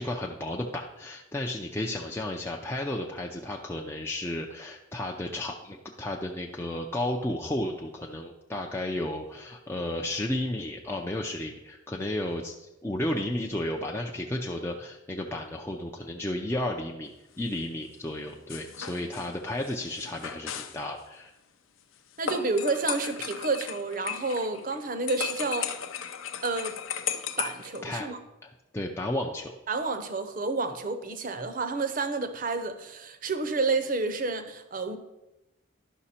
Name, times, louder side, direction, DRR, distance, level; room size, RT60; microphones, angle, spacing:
voice 1, 0.0-21.3 27.8-28.1 28.4-29.5, left 1 dB, 10° left, 0 dB, 0.5 m, -33 dB
sound 1, 18.5-20.8 22.3-24.8 25.1-27.8, left 8 dB, 85° left, 0.6 m, -35 dB
voice 2, 22.2-25.7 26.4-26.8 27.4-28.2 29.7-35.0, right 3 dB, 45° right, 9 dB, 0.7 m, -30 dB
11.0 x 5.9 x 4.2 m, 0.97 s
head